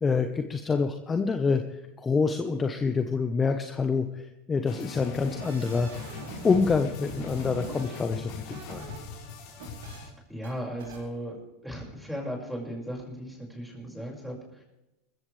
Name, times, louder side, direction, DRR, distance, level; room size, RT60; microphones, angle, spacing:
voice 1, 0.0-1.6 2.0-6.1 6.4-8.9, left 4 dB, 20° left, 6 dB, 1.2 m, -27 dB
sound 1, 4.7-10.1, left 4 dB, 65° left, 4.5 m, -40 dB
sound 2, 5.3-6.8 7.0-9.0 9.3-10.0 10.4-10.5 10.8-11.0, right 2 dB, 85° right, 4.6 m, -43 dB
voice 2, 9.8-14.6, equal, 5° right, -1 dB, 5.9 m, -37 dB
20.0 x 14.5 x 3.4 m, 0.94 s
supercardioid pair, 110°, 0 cm